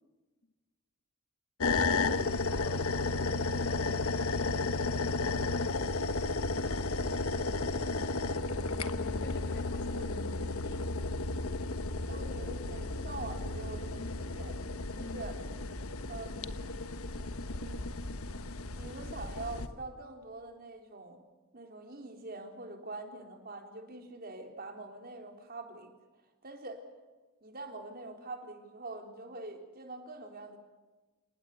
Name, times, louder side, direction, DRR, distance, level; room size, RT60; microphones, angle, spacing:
sound 1, 1.6-19.7, left 3 dB, 90° left, 1.3 m, -33 dB
voice 1, 2.0-2.8 3.4-6.1 6.5-8.3 9.1-10.1 10.4-10.9 14.9-15.4, left 2 dB, 55° left, 5 dB, 2.0 m, -49 dB
voice 2, 12.1-14.6 14.9-15.4 16.1-16.8 17.6-17.9 18.7-21.2 21.5-25.9 26.4-26.9 27.4-30.6, right 2 dB, 45° right, 4 dB, 3.8 m, -44 dB
28.5 x 19.0 x 8.4 m, 1.2 s
head